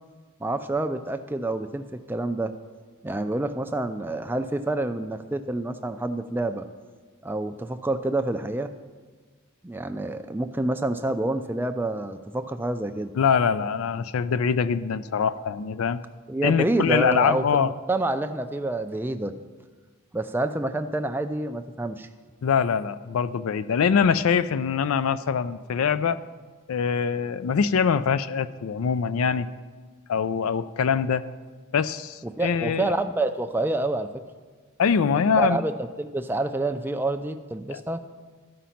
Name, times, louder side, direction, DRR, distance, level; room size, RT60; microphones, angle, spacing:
voice 1, 0.4-2.5 3.0-6.7 7.2-8.7 9.6-13.1 16.3-19.3 20.1-22.1 32.2-34.1 35.4-38.0, right 2 dB, 10° right, 8 dB, 0.3 m, -28 dB
voice 2, 13.2-16.0 16.4-17.7 22.4-26.2 26.7-29.5 30.1-31.3 31.7-32.9 34.8-35.6 37.7-37.8, left 6 dB, 75° left, 15 dB, 0.4 m, -23 dB
12.5 x 5.1 x 5.7 m, 1.5 s
head